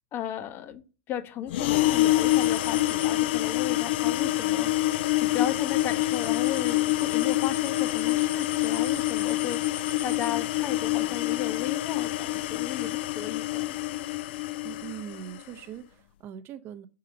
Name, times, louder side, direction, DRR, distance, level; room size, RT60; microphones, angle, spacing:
voice 1, 0.1-0.8 1.1-4.7 5.3-14.1, left 10 dB, 30° left, 0.7 m, -35 dB
sound 1, 1.5-15.4, left 17 dB, 55° left, 0.3 m, -26 dB
sound 2, 2.3-3.1 4.6-10.3 12.0-13.1, left 6 dB, 75° left, 1.5 m, -41 dB
voice 2, 14.6-16.9, right 10 dB, 30° right, 0.6 m, -41 dB
6.5 x 3.8 x 4.2 m
hypercardioid pair, 105°, 7 cm